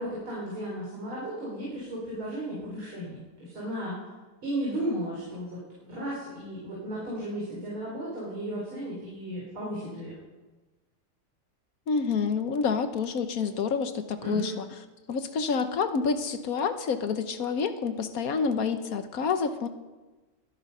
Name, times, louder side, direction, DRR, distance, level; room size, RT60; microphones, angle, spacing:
voice 1, 0.0-4.0 4.4-5.6 5.9-10.2 14.2-14.6, right 1 dB, 85° right, -6 dB, 5.5 m, -34 dB
voice 2, 11.9-14.7 15.1-19.7, left 5 dB, 50° left, 9 dB, 1.3 m, -28 dB
22.0 x 11.0 x 5.5 m, 1.2 s
omnidirectional pair, 2.2 m